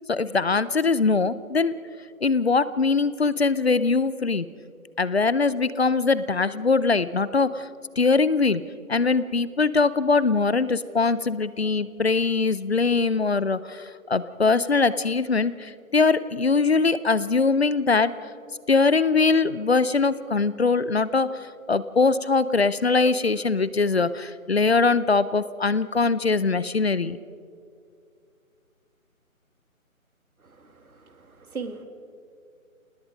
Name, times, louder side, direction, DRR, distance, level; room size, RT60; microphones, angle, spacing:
voice 1, 0.1-1.7 2.2-4.5 5.0-7.7 8.0-8.6 8.9-18.1 18.7-27.2, left 4 dB, 45° left, 16 dB, 0.6 m, -22 dB
voice 2, 30.4-31.8, right 4 dB, 80° right, 7 dB, 2.4 m, -39 dB
27.5 x 19.5 x 5.2 m, 2.3 s
figure-of-eight pair, 170°, 43 cm